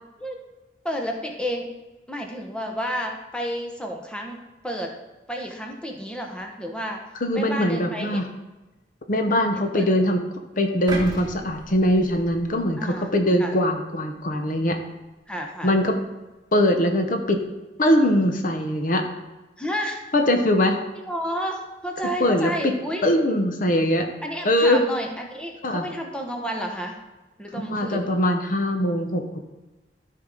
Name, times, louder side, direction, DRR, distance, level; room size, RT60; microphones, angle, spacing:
voice 1, 0.8-1.7 2.1-4.9 5.3-7.0 7.3-8.3 9.5-9.8 12.8-13.1 13.4-13.6 15.3-15.7 19.6-20.0 21.1-23.0 24.2-27.0 27.4-28.1, equal, 5° left, 2 dB, 1.0 m, -31 dB
voice 2, 7.2-8.3 9.1-10.2 10.6-14.8 15.6-16.0 16.5-17.4 17.8-19.0 20.1-20.8 22.2-22.7 23.0-24.1 24.4-24.8 25.6-25.8 27.5-29.4, left 1 dB, 50° left, 5 dB, 0.8 m, -21 dB
sound 1, 10.9-13.0 13.5-13.7, right 2 dB, 25° right, 1.4 m, -36 dB
13.0 x 4.8 x 3.8 m, 1.1 s
head